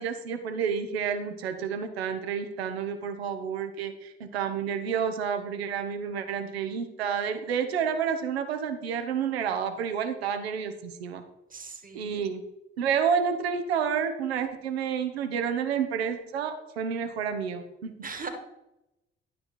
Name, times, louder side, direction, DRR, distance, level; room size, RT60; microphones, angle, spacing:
voice 1, 0.0-11.2 11.9-12.4 12.8-17.9, right 7 dB, 75° right, 8 dB, 0.9 m, -30 dB
voice 2, 11.5-12.2 18.0-18.3, right 5 dB, 25° right, 7 dB, 1.5 m, -39 dB
11.0 x 5.4 x 4.3 m, 0.91 s
figure-of-eight pair, 45°, 32 cm